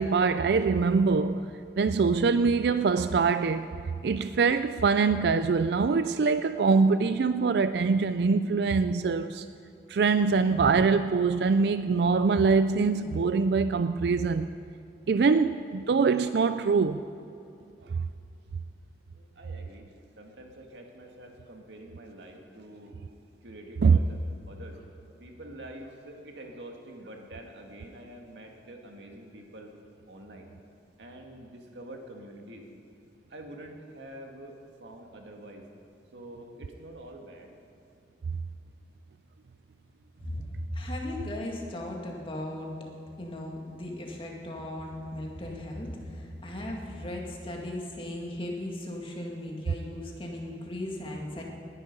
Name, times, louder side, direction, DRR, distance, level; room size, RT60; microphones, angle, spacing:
voice 1, 0.0-1.5 1.8-3.7 4.0-9.5 9.9-14.5 15.1-17.0 23.8-24.0, right 4 dB, 65° right, 0.4 m, -23 dB
voice 2, 19.2-19.9 20.2-23.1 23.4-24.2 24.5-29.7 30.1-30.5 31.0-32.7 33.3-35.6 36.1-37.5 40.3-40.6, right 1 dB, 85° right, 2.0 m, -46 dB
voice 3, 40.7-42.7 43.2-51.4, left 1 dB, 30° left, 2.1 m, -37 dB
19.5 x 10.5 x 5.4 m
head